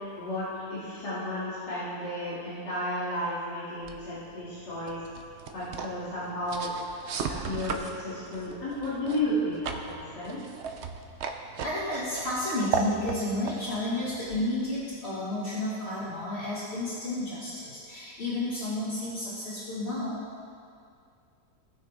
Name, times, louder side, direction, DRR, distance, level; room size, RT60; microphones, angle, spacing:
voice 1, 0.2-5.0 5.5-6.7 7.4-10.4, left 1 dB, 80° left, -13 dB, 3.3 m, -33 dB
sound 1, 3.8-15.0, right 5 dB, 60° right, 0.8 m, -37 dB
voice 2, 11.6-20.2, left 1 dB, 40° left, -11 dB, 2.1 m, -31 dB
18.5 x 6.5 x 3.5 m, 2.4 s
omnidirectional pair, 1.7 m